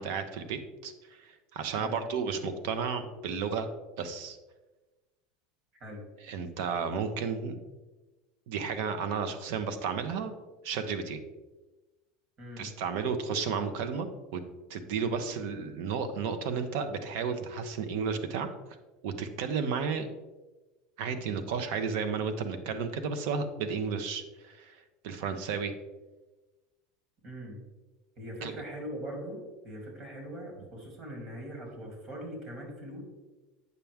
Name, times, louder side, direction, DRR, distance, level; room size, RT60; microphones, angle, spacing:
voice 1, 0.0-3.7 4.0-4.4 6.2-7.6 8.5-10.3 10.6-11.2 12.6-14.4 14.7-18.5 19.0-20.1 21.0-25.7 28.4-28.5, right 6 dB, 70° right, 9 dB, 0.8 m, -33 dB
voice 2, 12.4-12.7 27.2-27.6 28.2-33.0, equal, 40° right, 1 dB, 2.7 m, -41 dB
8.3 x 5.9 x 3.5 m, 1.2 s
supercardioid pair, 125°, 0 cm